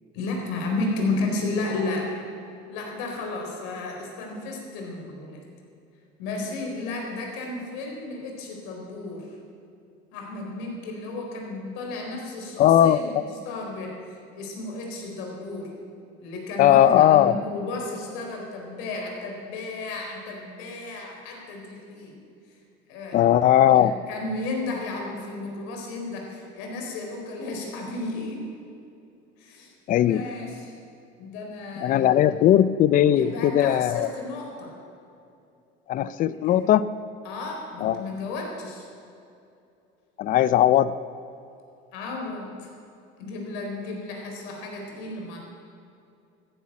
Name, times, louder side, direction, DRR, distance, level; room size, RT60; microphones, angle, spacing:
voice 1, 0.1-2.1 2.7-5.4 6.2-9.3 10.1-14.0 14.3-15.7 16.2-22.2 22.9-23.2 23.7-28.5 29.4-29.7 30.0-30.7 31.2-32.4 33.1-34.8 36.4-36.6 37.2-38.9 41.9-42.7 43.2-45.4, left 2 dB, 85° left, 1 dB, 4.1 m, -33 dB
voice 2, 12.6-13.0 16.6-17.3 23.1-24.0 29.9-30.2 31.8-34.1 35.9-36.8 37.8-38.1 40.2-40.9, left 11 dB, 45° left, 16 dB, 0.5 m, -18 dB
14.5 x 10.5 x 8.7 m, 2.7 s
cardioid pair, 140°, 20 cm